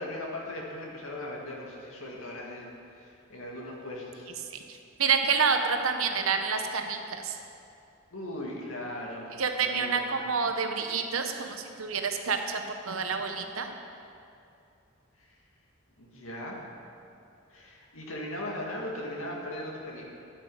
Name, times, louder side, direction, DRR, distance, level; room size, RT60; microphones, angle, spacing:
voice 1, 0.0-4.3 8.1-9.3 9.6-10.0 16.0-16.6 17.5-20.1, left 1 dB, 85° left, -2 dB, 2.1 m, -38 dB
voice 2, 4.5-7.4 9.4-13.7, right 5 dB, 85° right, 5 dB, 0.9 m, -28 dB
12.0 x 8.9 x 4.9 m, 2.6 s
head